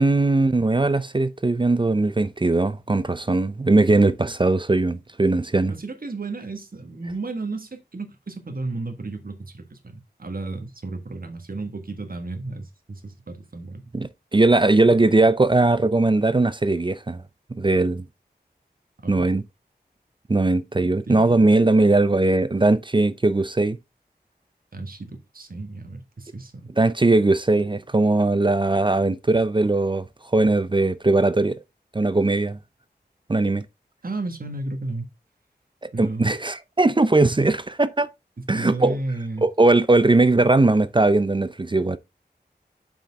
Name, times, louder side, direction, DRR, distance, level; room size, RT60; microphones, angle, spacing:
voice 1, 0.0-5.7 13.9-17.2 17.5-18.0 19.1-19.4 20.3-23.8 26.8-30.0 30.3-31.6 31.9-32.6 33.3-33.6 36.0-38.1 38.5-39.0 39.4-42.0, right 2 dB, 30° right, 0.5 m, -19 dB
voice 2, 5.7-13.8 19.0-19.3 20.8-21.4 24.7-26.7 34.0-35.1 35.9-36.3 38.4-39.4, right 2 dB, 55° right, 1.6 m, -33 dB
7.1 x 5.8 x 3.5 m
wide cardioid pair, 75°, 18 cm